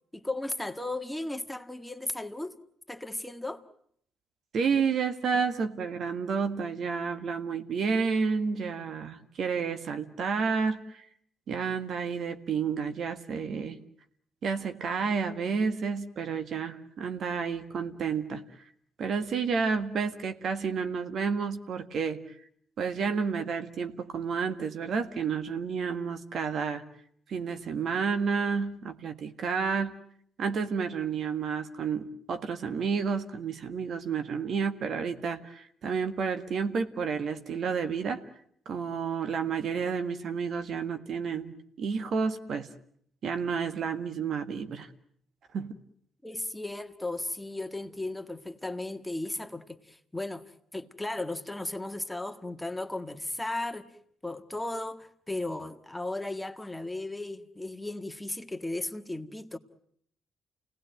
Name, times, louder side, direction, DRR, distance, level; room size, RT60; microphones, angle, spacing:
voice 1, 0.1-2.5 2.9-3.6 46.2-53.9 54.2-59.6, left 2 dB, 10° left, 1.7 m, -35 dB
voice 2, 4.5-11.0 11.5-13.8 14.4-18.4 19.0-22.2 22.8-26.8 27.3-29.9 30.4-38.2 38.6-42.7 43.2-44.9 45.5-45.7, right 5 dB, 60° right, 1.7 m, -30 dB
28.5 x 18.5 x 9.1 m
supercardioid pair, 55°, 0 cm